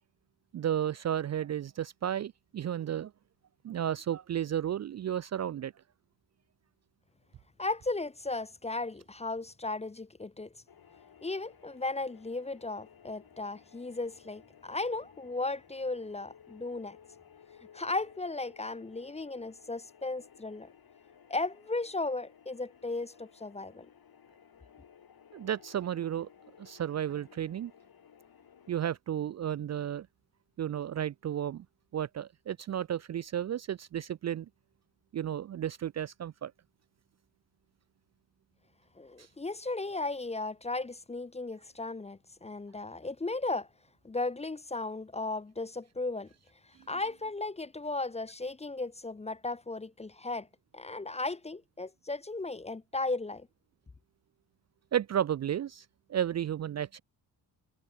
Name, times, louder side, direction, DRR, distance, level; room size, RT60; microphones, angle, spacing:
voice 1, 0.5-3.1 3.6-5.7 25.3-26.3 26.6-27.7 28.7-30.1 30.6-31.7 31.9-34.5 35.1-36.5 39.2-39.3 54.9-57.0, right 10 dB, 40° right, 0.5 m, -33 dB
voice 2, 7.6-10.5 11.2-17.0 17.7-20.7 21.3-23.9 39.0-43.7 44.0-46.3 46.9-50.5 50.7-53.5, left 2 dB, 15° left, 0.6 m, -35 dB
sound 1, 10.7-28.8, left 8 dB, 55° left, 7.1 m, -58 dB
cardioid pair, 90°, 43 cm